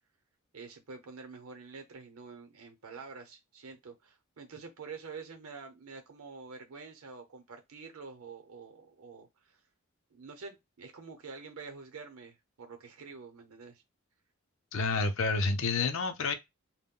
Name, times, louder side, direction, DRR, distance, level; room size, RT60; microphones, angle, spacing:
voice 1, 0.5-9.6 10.1-13.8, right 4 dB, 80° right, 0.7 m, -47 dB
voice 2, 14.7-16.3, left 3 dB, 65° left, 0.5 m, -29 dB
2.2 x 2.1 x 3.6 m
head